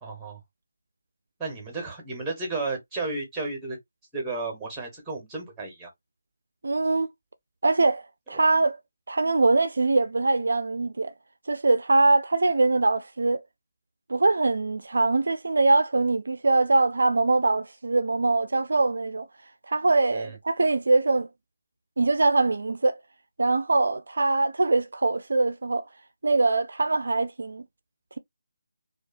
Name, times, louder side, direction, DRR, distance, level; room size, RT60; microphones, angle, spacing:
voice 1, 0.0-0.4 1.4-3.8 4.1-5.9 20.1-20.3, right 3 dB, 5° right, 1.1 m, -33 dB
voice 2, 6.6-7.1 7.6-8.8 9.1-11.1 11.5-13.4 14.1-19.3 19.7-21.3 22.0-23.0 23.4-25.8 26.2-27.6, right 3 dB, 65° right, 0.3 m, -23 dB
2.6 x 2.3 x 2.5 m
figure-of-eight pair, 155°, 0 cm